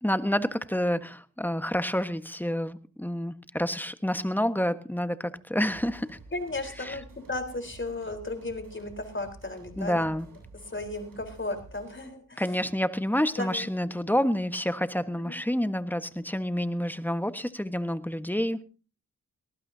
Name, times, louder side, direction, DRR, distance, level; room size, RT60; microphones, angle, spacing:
voice 1, 0.0-6.2 6.8-7.0 9.8-10.3 12.4-18.6, equal, 5° left, 10 dB, 1.4 m, -28 dB
sound 1, 5.7-12.2, right 3 dB, 85° right, 7.9 m, -50 dB
voice 2, 6.3-10.1 10.7-12.4 13.3-13.7 15.2-15.4, left 2 dB, 35° left, 7 dB, 4.1 m, -35 dB
19.0 x 18.5 x 2.8 m, 0.36 s
cardioid pair, 50°, 33 cm